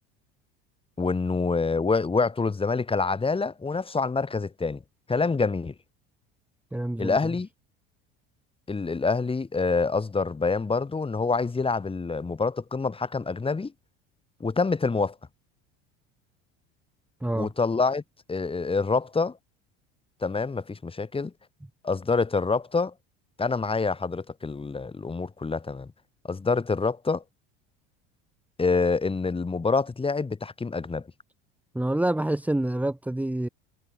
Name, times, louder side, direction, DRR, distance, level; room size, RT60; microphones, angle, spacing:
voice 1, 1.0-4.8 5.1-5.7 7.0-7.5 8.7-13.7 14.4-15.1 17.3-18.0 18.3-19.4 20.2-21.3 21.8-22.9 23.4-25.9 26.3-27.2 28.6-31.0, left 4 dB, 20° left, 3.8 m, -26 dB
voice 2, 6.7-7.3 17.2-17.5 31.7-33.5, right 1 dB, 5° right, 2.0 m, -27 dB
supercardioid pair, 95°, 30 cm